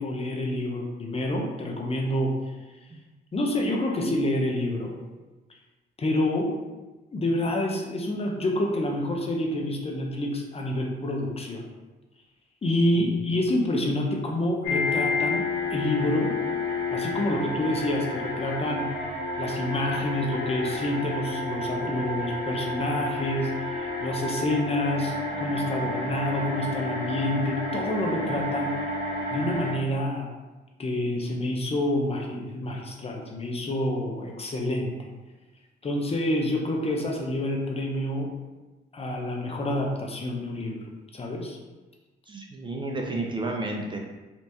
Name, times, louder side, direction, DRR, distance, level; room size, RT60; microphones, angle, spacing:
voice 1, 0.0-2.3 3.3-4.9 6.0-6.5 7.1-11.6 12.6-15.4 15.7-16.4 16.9-18.9 19.4-28.7 29.3-30.3 30.8-34.9 35.8-38.3 38.9-40.8 41.1-41.6, left 1 dB, 30° left, 0 dB, 0.6 m, -28 dB
sound 1, 14.6-29.7, left 2 dB, 55° left, 1.3 m, -30 dB
voice 2, 42.3-44.0, right 2 dB, 25° right, 0 dB, 0.5 m, -32 dB
3.4 x 2.9 x 2.7 m, 1.2 s
cardioid pair, 90°, 20 cm